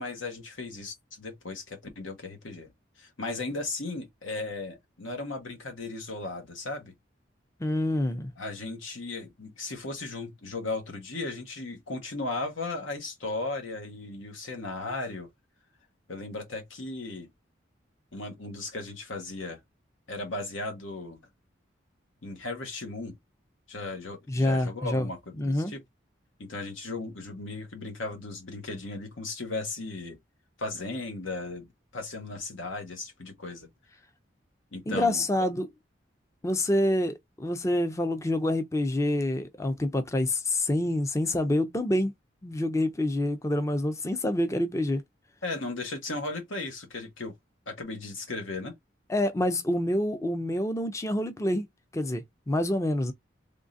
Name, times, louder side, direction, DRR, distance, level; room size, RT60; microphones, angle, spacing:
voice 1, 0.0-2.7 3.0-6.9 8.4-15.3 16.1-17.3 18.1-19.6 20.1-21.2 22.2-23.2 23.7-25.8 26.4-30.2 30.6-33.7 34.7-35.2 45.4-47.4 47.7-48.7, left 2 dB, 90° left, 1.3 m, -36 dB
voice 2, 7.6-8.3 24.3-25.1 25.4-25.7 34.9-35.7 36.4-42.1 42.4-45.0 49.1-51.7 51.9-53.1, left 1 dB, 15° left, 0.4 m, -27 dB
3.7 x 3.0 x 2.6 m
head